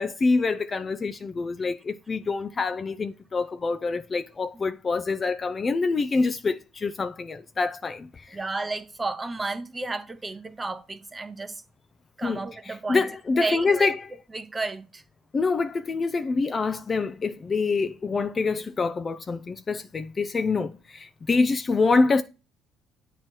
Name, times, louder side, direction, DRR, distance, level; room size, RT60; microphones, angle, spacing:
voice 1, 0.0-8.4 12.2-12.4 12.7-13.9 15.3-22.2, left 4 dB, 30° left, 0.3 m, -26 dB
voice 2, 8.3-11.6 12.2-13.1 13.3-13.9 14.3-15.0, right 3 dB, 15° right, 0.7 m, -32 dB
8.6 x 3.0 x 4.5 m
cardioid pair, 115°, 0 cm